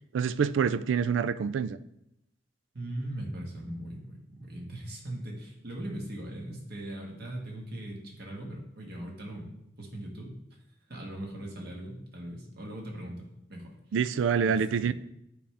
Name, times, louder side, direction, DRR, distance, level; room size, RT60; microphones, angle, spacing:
voice 1, 0.1-1.8 13.9-14.9, right 6 dB, 75° right, 0.3 m, -26 dB
voice 2, 2.7-9.5 9.8-10.3 10.9-13.8 14.4-14.9, right 1 dB, 60° right, 1.6 m, -40 dB
8.6 x 5.0 x 3.4 m
head